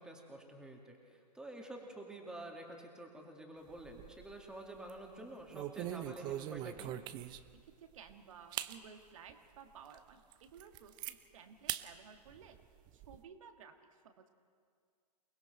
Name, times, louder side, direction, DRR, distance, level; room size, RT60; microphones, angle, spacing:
voice 1, 0.0-6.9, right 1 dB, 5° right, 1 dB, 2.3 m, -49 dB
sound 1, 3.7-4.4 4.8-5.0 5.5-7.6 8.1-8.2 8.5-8.8 9.3-9.4 9.9-10.0 10.3-11.1 11.7-11.9 12.2-13.2, right 13 dB, 20° right, 0.6 m, -42 dB
voice 2, 7.5-12.6 12.9-14.3, right 7 dB, 50° right, 6 dB, 1.8 m, -56 dB
29.0 x 20.0 x 4.5 m, 2.1 s
figure-of-eight pair, 110°, 21 cm